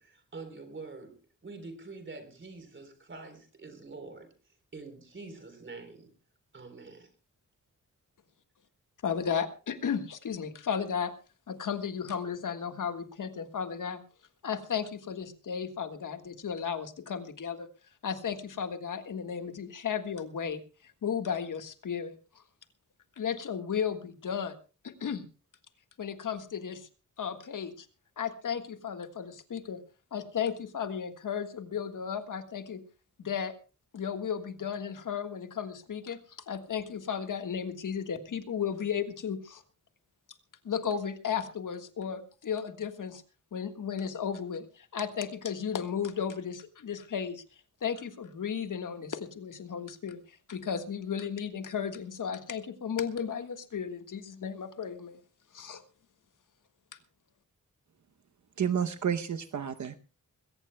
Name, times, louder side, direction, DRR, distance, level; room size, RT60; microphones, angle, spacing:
voice 1, 0.0-4.3 4.7-6.1 6.5-7.1, right 3 dB, 35° right, 8 dB, 3.7 m, -46 dB
voice 2, 9.0-11.1 11.5-14.0 14.4-17.7 18.0-22.4 23.2-24.5 24.8-25.2 26.0-26.9 27.2-27.9 28.2-29.8 30.1-32.8 33.2-33.5 33.9-39.6 40.6-43.2 43.5-47.4 47.8-55.2 55.5-55.8, left 7 dB, 75° left, 7 dB, 1.6 m, -34 dB
voice 3, 58.6-60.0, right 8 dB, 60° right, 8 dB, 0.8 m, -30 dB
21.5 x 17.5 x 2.2 m, 0.34 s
wide cardioid pair, 150°, 32 cm